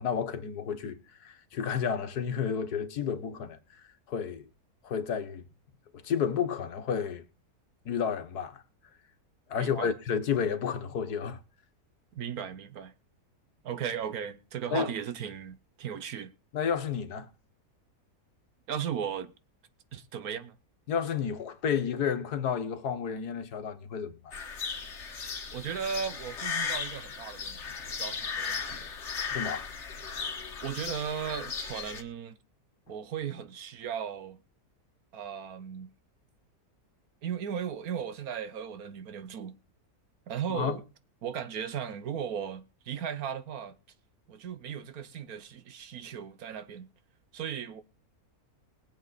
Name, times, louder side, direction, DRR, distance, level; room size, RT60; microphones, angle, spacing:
voice 1, 0.0-3.6 4.1-4.4 4.8-5.4 5.9-7.2 7.9-8.6 9.5-11.4 14.7-14.9 16.5-17.3 20.9-24.3 29.3-29.7 40.5-40.7, left 7 dB, 90° left, 1.8 m, -31 dB
voice 2, 9.6-9.9 12.1-12.9 13.6-16.3 18.7-19.3 19.9-20.6 25.1-29.0 30.6-32.4 32.9-34.4 35.1-35.9 37.2-39.6 40.3-40.8 41.2-43.8 44.3-46.9 47.3-47.8, right 8 dB, 70° right, 1.4 m, -36 dB
sound 1, 24.3-32.0, left 6 dB, 50° left, 1.6 m, -36 dB
21.0 x 7.7 x 4.1 m
omnidirectional pair, 1.6 m